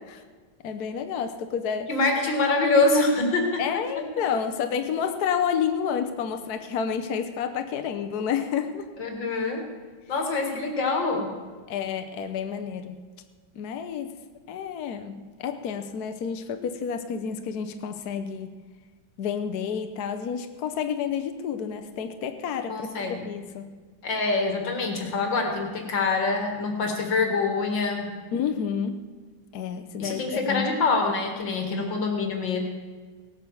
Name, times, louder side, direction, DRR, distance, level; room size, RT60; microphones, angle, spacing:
voice 1, 0.6-1.9 3.6-8.9 10.5-10.6 11.7-13.0 13.5-14.2 14.5-18.6 19.2-23.7 28.3-29.0 29.5-30.7, left 7 dB, 65° left, 8 dB, 1.2 m, -30 dB
voice 2, 1.9-3.6 9.0-9.7 10.1-11.4 22.7-23.2 24.0-28.2 30.0-32.6, left 3 dB, 85° left, 3 dB, 2.6 m, -25 dB
17.5 x 9.0 x 6.9 m, 1.5 s
omnidirectional pair, 2.0 m